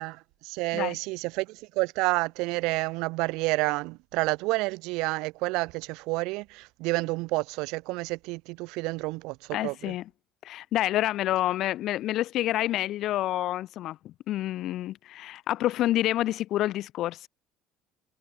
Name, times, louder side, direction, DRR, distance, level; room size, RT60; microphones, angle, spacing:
voice 1, 0.0-9.9, right 24 dB, 65° right, 0.6 m, -29 dB
voice 2, 9.5-10.0 10.4-17.3, left 14 dB, 45° left, 1.9 m, -28 dB
cardioid pair, 180°, 0 cm